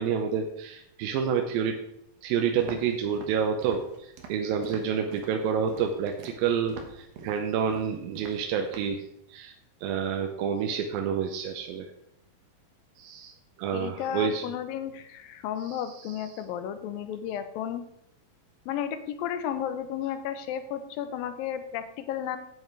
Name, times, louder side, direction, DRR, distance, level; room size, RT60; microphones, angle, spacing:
voice 1, 0.0-1.8 2.2-9.5 9.8-11.9 13.0-13.3 13.6-14.4 15.7-15.8, right 7 dB, 85° right, 4 dB, 2.5 m, -29 dB
Walk footsteps, 2.6-9.0, right 4 dB, 60° right, 2.0 m, -45 dB
voice 2, 13.7-17.9 18.7-22.4, left 9 dB, 85° left, 10 dB, 2.6 m, -33 dB
9.5 x 8.0 x 4.6 m, 0.76 s
omnidirectional pair, 4.1 m